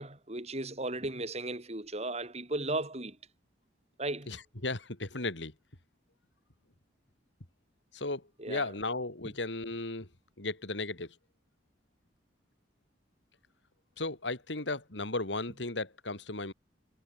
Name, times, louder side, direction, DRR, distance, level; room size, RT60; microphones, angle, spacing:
voice 1, 0.0-3.2 4.0-4.3 8.4-8.7, right 2 dB, 35° right, 5.8 m, -36 dB
voice 2, 4.3-5.5 7.9-10.1 10.4-11.1 14.0-16.5, left 2 dB, 85° left, 3.4 m, -35 dB
head